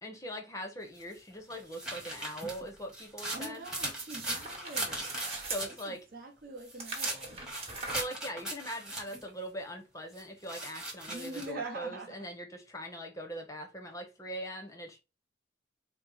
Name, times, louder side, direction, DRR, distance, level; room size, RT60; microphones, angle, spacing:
voice 1, 0.0-3.6 5.5-6.0 7.9-15.0, equal, 15° left, 0.8 m, -41 dB
sound 1, 1.0-5.9 6.6-9.3 10.2-11.5, right 1 dB, 5° right, 1.1 m, -39 dB
voice 2, 3.3-5.0 5.7-7.4 11.1-12.2, right 2 dB, 45° right, 0.9 m, -44 dB
sound 2, 4.0-5.7 6.8-8.0, right 3 dB, 30° right, 1.2 m, -39 dB
4.3 x 2.0 x 3.8 m
head